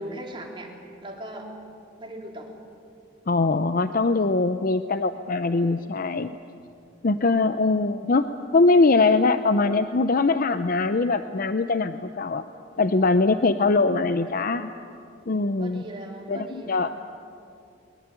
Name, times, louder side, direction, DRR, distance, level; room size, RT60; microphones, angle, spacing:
voice 1, 0.0-1.5 2.0-2.5 15.6-16.9, right 1 dB, 25° right, 0 dB, 3.5 m, -39 dB
voice 2, 3.3-6.4 7.0-12.4 12.8-14.7 15.3-15.8 16.3-16.9, left 3 dB, 50° left, 10 dB, 0.6 m, -22 dB
22.0 x 21.5 x 9.2 m, 2.5 s
head